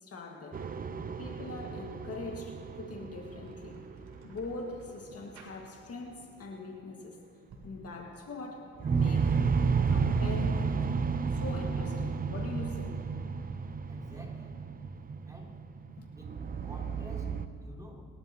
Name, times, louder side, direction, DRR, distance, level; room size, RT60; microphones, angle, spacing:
voice 1, 0.0-0.7 1.2-3.9 4.2-7.2 7.6-9.4 9.9-10.9 11.3-13.0 16.0-16.1, left 3 dB, 50° left, 1 dB, 1.8 m, -42 dB
sound 1, 0.5-5.3 8.8-17.5, right 5 dB, 30° right, 0.6 m, -32 dB
sound 2, 3.3-6.1 6.4-6.7 7.3-7.8 9.8-10.3 12.2-12.7, right 3 dB, 65° right, 2.7 m, -50 dB
voice 2, 13.9-14.6 15.3-15.5 16.1-16.4 16.6-18.1, equal, 10° right, -2 dB, 3.1 m, -50 dB
25.0 x 12.0 x 2.9 m, 2.2 s
cardioid pair, 90°, 30 cm